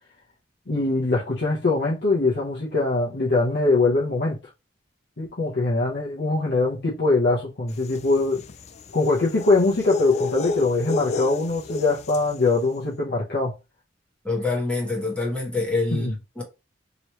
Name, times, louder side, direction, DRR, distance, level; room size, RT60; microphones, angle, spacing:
voice 1, 0.7-4.4 5.2-8.4 8.9-13.5 15.9-16.1, left 3 dB, 60° left, 0.9 m, -22 dB
sound 1, 7.8-12.4, left 3 dB, 35° left, 0.3 m, -31 dB
voice 2, 14.2-16.4, left 3 dB, 5° left, 1.2 m, -26 dB
3.1 x 3.0 x 3.0 m
head